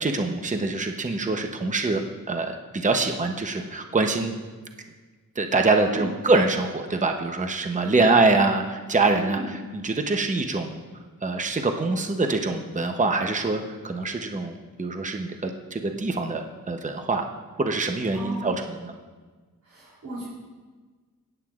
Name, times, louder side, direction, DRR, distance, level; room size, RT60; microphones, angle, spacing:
voice 1, 0.0-2.0 2.3-4.3 5.4-9.4 9.8-10.8 11.2-17.3 17.6-18.9, right 3 dB, 20° right, 5 dB, 0.7 m, -24 dB
voice 2, 9.1-9.5 18.1-18.5 19.6-20.3, right 2 dB, 60° right, -8 dB, 3.1 m, -36 dB
17.0 x 8.9 x 2.4 m, 1.4 s
wide cardioid pair, 95°, 35 cm